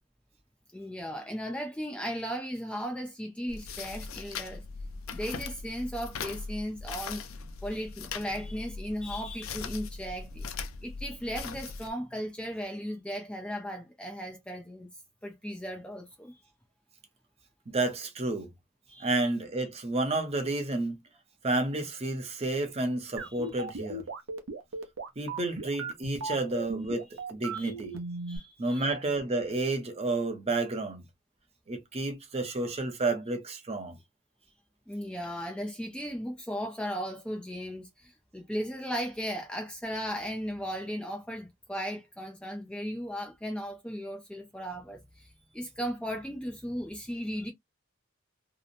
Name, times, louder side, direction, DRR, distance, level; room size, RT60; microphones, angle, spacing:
voice 1, 0.7-4.6 5.1-7.2 7.6-10.4 10.8-14.9 15.2-16.4 18.9-19.1 23.2-23.3 27.5-27.7 28.3-29.0 34.9-47.5, equal, 5° left, 0.4 m, -36 dB
sound 1, 3.5-11.9, left 4 dB, 75° left, 0.5 m, -40 dB
voice 2, 17.7-18.5 19.0-21.0 21.4-24.0 25.2-28.0 28.6-31.0 31.7-34.0, right 2 dB, 30° right, 0.7 m, -30 dB
sound 2, 23.2-28.4, right 3 dB, 70° right, 0.6 m, -36 dB
2.8 x 2.1 x 2.4 m
head